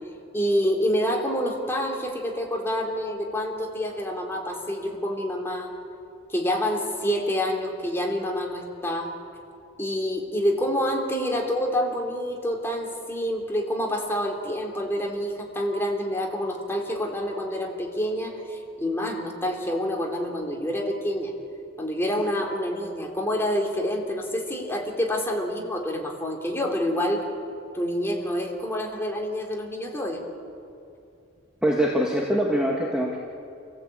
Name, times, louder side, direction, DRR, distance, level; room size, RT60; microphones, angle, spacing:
voice 1, 0.3-5.7 6.3-9.1 9.8-21.3 21.8-27.2 27.7-30.2, equal, 10° left, 0 dB, 3.3 m, -27 dB
voice 2, 31.6-33.2, equal, 5° right, -3 dB, 1.8 m, -23 dB
28.5 x 17.0 x 8.6 m, 2.6 s
head